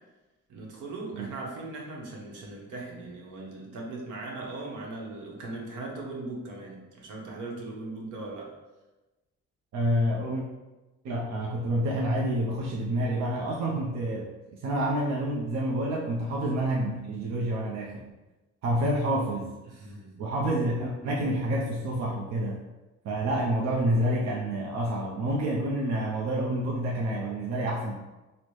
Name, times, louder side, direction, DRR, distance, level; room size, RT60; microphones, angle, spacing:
voice 1, 0.5-8.5 19.6-20.2, right 2 dB, 80° right, -2 dB, 0.9 m, -39 dB
voice 2, 9.7-10.4 11.0-14.3 14.6-18.1 18.6-19.5 20.2-22.6 23.0-28.0, right 1 dB, 65° right, -3 dB, 0.6 m, -28 dB
3.9 x 2.1 x 3.1 m, 1.1 s
cardioid pair, 90°, 30 cm